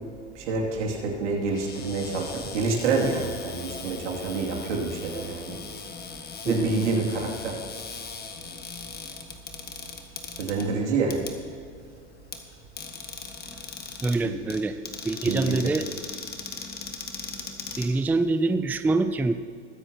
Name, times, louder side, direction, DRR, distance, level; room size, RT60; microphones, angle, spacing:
voice 1, 0.3-5.6 6.4-7.6 10.4-11.2 14.2-14.4 15.3-15.6, right 4 dB, 80° right, -1 dB, 2.7 m, -27 dB
Cupboard open or close, 1.5-18.5, left 5 dB, 25° left, 1.5 m, -40 dB
voice 2, 14.0-14.7 15.0-15.8 17.8-19.3, right 3 dB, 5° right, 10 dB, 0.4 m, -25 dB
21.0 x 9.6 x 2.9 m, 2.3 s
hypercardioid pair, 90°, 35 cm